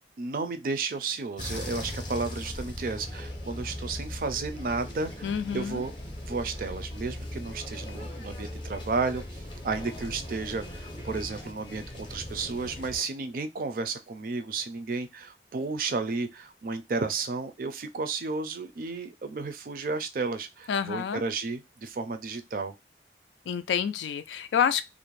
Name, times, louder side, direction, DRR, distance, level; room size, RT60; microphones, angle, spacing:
voice 1, 0.2-5.9 6.3-22.7, right 4 dB, 50° right, 0.4 m, -33 dB
sound 1, 1.4-13.0, left 1 dB, 25° left, 0.6 m, -39 dB
voice 2, 5.2-5.8 20.7-21.2 23.5-24.8, left 8 dB, 90° left, 0.3 m, -28 dB
2.5 x 2.1 x 3.1 m
head